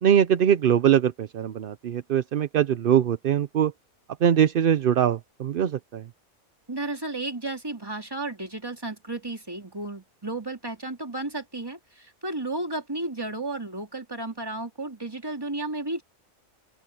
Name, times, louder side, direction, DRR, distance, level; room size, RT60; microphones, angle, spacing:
voice 1, 0.0-3.7 4.2-6.1, right 9 dB, 55° right, 0.6 m, -22 dB
voice 2, 6.7-16.0, right 2 dB, 15° right, 2.6 m, -33 dB
open air
omnidirectional pair, 1.5 m